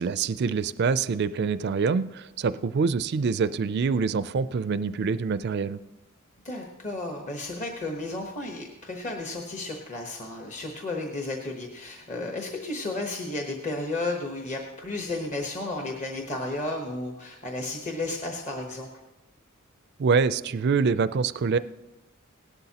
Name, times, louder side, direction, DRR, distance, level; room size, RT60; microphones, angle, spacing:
voice 1, 0.0-5.8 20.0-21.6, right 5 dB, 50° right, 14 dB, 0.4 m, -25 dB
voice 2, 6.4-18.9, left 2 dB, 35° left, 1 dB, 1.1 m, -33 dB
17.5 x 12.0 x 2.9 m, 1.0 s
head